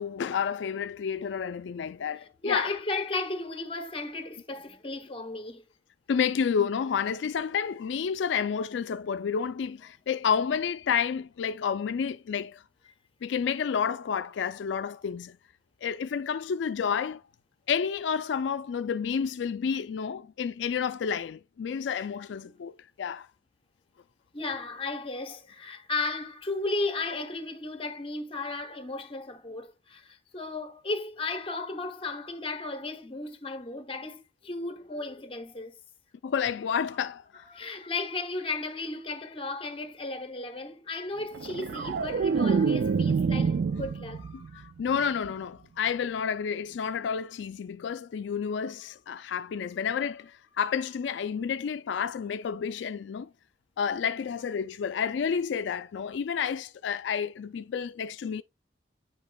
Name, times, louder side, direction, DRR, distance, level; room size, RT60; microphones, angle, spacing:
voice 1, 0.0-2.7 6.1-12.6 13.2-15.4 15.8-17.2 17.7-22.7 23.0-23.3 36.2-37.4 44.3-53.3 53.8-58.4, left 7 dB, 80° left, 0.4 m, -30 dB
voice 2, 2.1-5.7 24.3-35.8 37.5-44.6, left 3 dB, 30° left, 1.0 m, -35 dB
sound 1, 41.3-44.5 44.9-45.3, right 5 dB, 60° right, 0.4 m, -27 dB
9.3 x 5.1 x 2.3 m
head